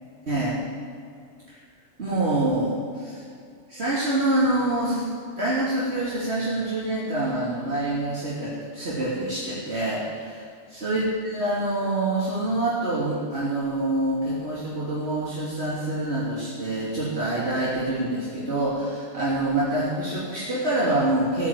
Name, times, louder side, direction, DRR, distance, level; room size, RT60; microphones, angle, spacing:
voice 1, 0.3-0.6 1.5-1.6 2.0-3.2 3.7-5.1 5.4-10.4 10.7-21.5, right 1 dB, 55° right, -8 dB, 3.2 m, -26 dB
15.0 x 9.9 x 7.6 m, 2.3 s
omnidirectional pair, 1.3 m